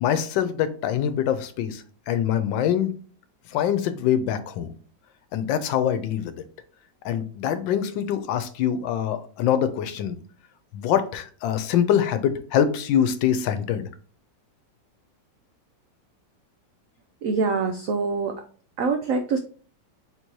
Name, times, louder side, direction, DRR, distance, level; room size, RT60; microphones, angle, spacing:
voice 1, 0.0-2.9 3.5-4.7 5.3-6.4 7.0-10.2 10.7-13.9, left 9 dB, 90° left, 10 dB, 1.3 m, -24 dB
voice 2, 17.2-18.4 18.8-19.4, right 4 dB, 75° right, 5 dB, 0.7 m, -24 dB
4.5 x 3.9 x 2.8 m, 0.41 s
omnidirectional pair, 2.0 m